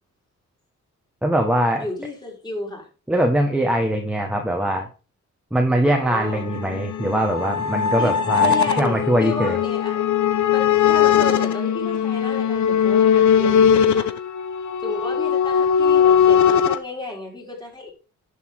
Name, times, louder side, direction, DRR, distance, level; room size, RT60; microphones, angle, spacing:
voice 1, 1.2-1.8 3.1-4.9 5.5-9.6, right 1 dB, 5° right, 3 dB, 1.5 m, -22 dB
voice 2, 1.8-2.9 5.8-6.5 8.0-10.0 10.5-14.1 14.8-17.9, left 2 dB, 15° left, -1 dB, 4.3 m, -33 dB
sound 1, 6.1-16.8, left 8 dB, 75° left, 0.9 m, -19 dB
11.0 x 7.0 x 3.8 m, 0.34 s
cardioid pair, 105°, 29 cm